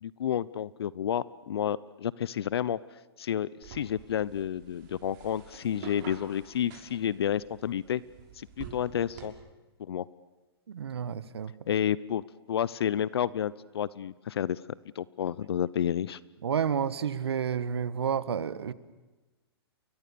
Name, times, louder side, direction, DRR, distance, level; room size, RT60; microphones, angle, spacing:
voice 1, 0.0-2.8 3.2-8.0 8.3-9.3 9.8-10.0 11.7-14.6 15.0-16.2, left 9 dB, 70° left, 20 dB, 0.7 m, -30 dB
sound 1, 3.6-9.3, right 6 dB, 45° right, 5.8 m, -47 dB
voice 2, 10.7-11.5 16.4-18.7, right 7 dB, 75° right, 16 dB, 1.3 m, -30 dB
30.0 x 22.0 x 6.9 m, 1.1 s
hypercardioid pair, 120°, 14 cm